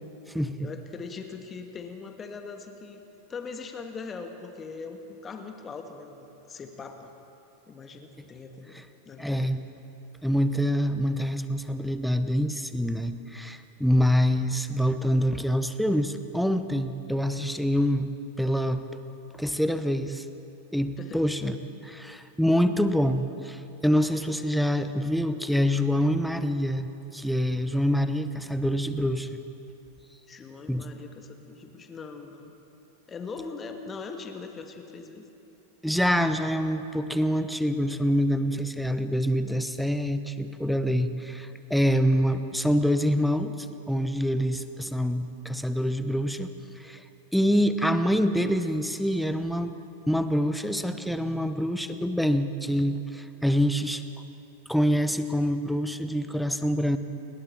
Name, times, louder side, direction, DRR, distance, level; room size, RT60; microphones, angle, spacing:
voice 1, 0.6-3.0 3.3-7.1 7.7-9.6 13.0-13.1 21.0-21.2 30.3-32.5 33.1-35.3, left 4 dB, 20° left, 5 dB, 1.7 m, -41 dB
voice 2, 9.2-9.6 10.2-18.1 18.4-18.8 19.3-20.2 20.7-21.6 21.8-29.4 30.7-30.9 35.8-46.5 46.8-47.0 47.3-49.7 50.1-54.0 54.7-57.0, equal, ahead, 10 dB, 1.0 m, -26 dB
29.0 x 20.5 x 4.6 m, 2.9 s
figure-of-eight pair, 90°, 0 cm